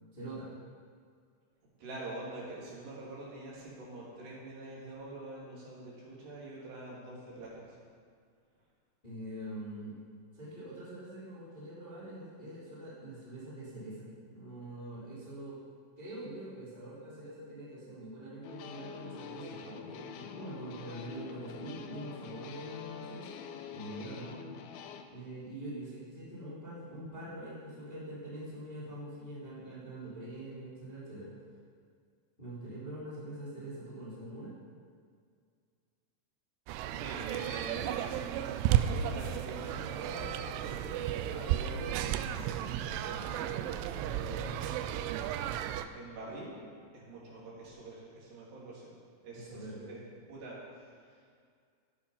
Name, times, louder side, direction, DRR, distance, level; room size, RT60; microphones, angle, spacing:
voice 1, 0.1-0.5 9.0-10.0 10.3-15.6 16.0-23.3 23.7-24.4 25.1-31.3 32.4-34.5 49.3-49.9, right 1 dB, 10° left, -9 dB, 2.9 m, -44 dB
voice 2, 1.8-7.8 37.0-45.2 45.9-46.5 46.9-48.9 49.2-50.0 50.3-51.3, right 2 dB, 65° right, -6 dB, 5.3 m, -45 dB
sound 1, 18.4-25.0, left 7 dB, 80° left, 2.3 m, -46 dB
sound 2, 36.7-45.9, right 11 dB, 85° right, 3.1 m, -33 dB
13.5 x 11.5 x 5.7 m, 2.1 s
omnidirectional pair, 5.4 m